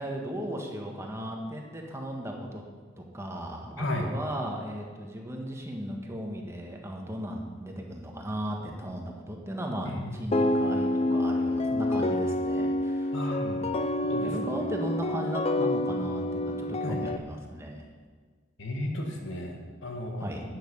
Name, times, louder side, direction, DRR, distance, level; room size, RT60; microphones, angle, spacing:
voice 1, 0.0-2.6 3.0-13.1 13.4-13.7 14.2-17.8 20.2-20.4, equal, 15° right, 1 dB, 1.5 m, -36 dB
voice 2, 3.8-4.1 9.9-10.2 13.1-13.6 14.0-14.3 16.8-17.0 18.6-20.3, left 1 dB, 70° left, 2 dB, 2.1 m, -34 dB
sound 1, 10.3-17.2, left 1 dB, 30° left, 0.5 m, -28 dB
11.5 x 9.8 x 5.5 m, 1.5 s
head